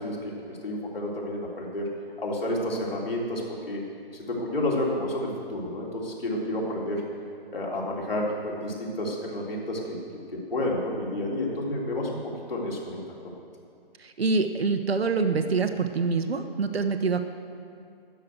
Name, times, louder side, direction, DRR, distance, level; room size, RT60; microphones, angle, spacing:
voice 1, 0.0-1.9 2.2-3.8 4.2-7.0 7.5-10.0 10.3-12.2 12.5-13.3, left 1 dB, 70° left, -3 dB, 3.6 m, -30 dB
voice 2, 14.0-17.2, right 4 dB, 85° right, 8 dB, 1.1 m, -25 dB
12.5 x 6.3 x 9.2 m, 2.4 s
hypercardioid pair, 175°, 30 cm